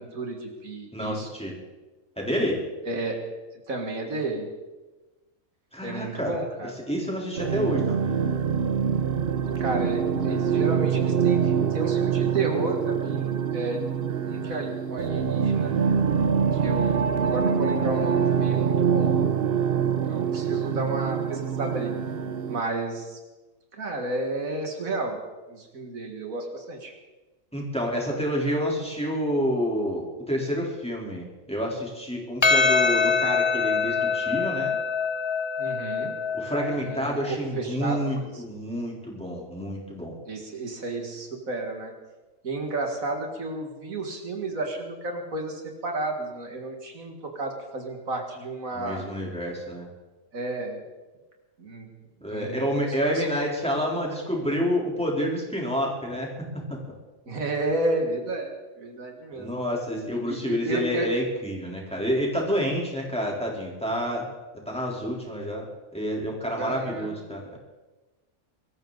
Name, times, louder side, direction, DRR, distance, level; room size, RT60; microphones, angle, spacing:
voice 1, 0.0-1.3 2.9-3.2 3.7-4.5 5.8-6.8 9.6-13.8 14.2-15.7 16.6-19.1 20.0-21.9 22.5-23.2 23.7-25.2 25.5-26.9 35.6-36.1 36.9-38.4 40.3-41.9 42.4-49.1 50.3-50.8 51.6-51.9 52.3-52.7 53.0-53.3 57.3-59.5 60.3-61.1 66.6-67.2, right 2 dB, 75° right, 2 dB, 2.4 m, -32 dB
voice 2, 0.9-1.6 2.2-2.6 5.7-6.4 6.9-8.2 27.5-34.8 36.3-40.2 48.7-49.9 52.2-56.3 59.3-64.3 64.7-65.7 65.9-67.6, equal, 5° left, -2 dB, 3.5 m, -28 dB
sound 1, 7.4-22.6, right 7 dB, 50° right, 0.8 m, -25 dB
Percussion, 32.4-37.0, left 5 dB, 30° left, 0.5 m, -24 dB
23.0 x 14.0 x 4.0 m, 1.2 s
omnidirectional pair, 1.4 m